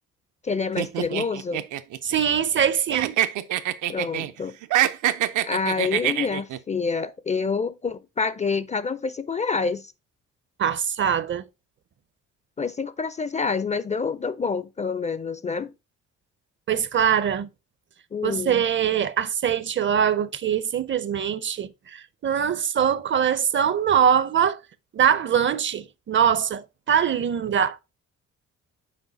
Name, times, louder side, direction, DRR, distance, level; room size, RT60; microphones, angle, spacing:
voice 1, 0.4-1.7 3.9-4.5 5.4-9.9 12.6-15.7 18.1-18.6, left 5 dB, 25° left, 0.4 m, -27 dB
sound 1, 0.8-2.6 2.9-4.3 4.6-6.6, right 12 dB, 80° right, 0.7 m, -25 dB
voice 2, 2.0-3.2 10.6-11.4 16.7-17.5 18.2-24.6 24.9-27.8, right 8 dB, 40° right, 0.5 m, -23 dB
6.4 x 4.6 x 3.9 m
cardioid pair, 90°, 30 cm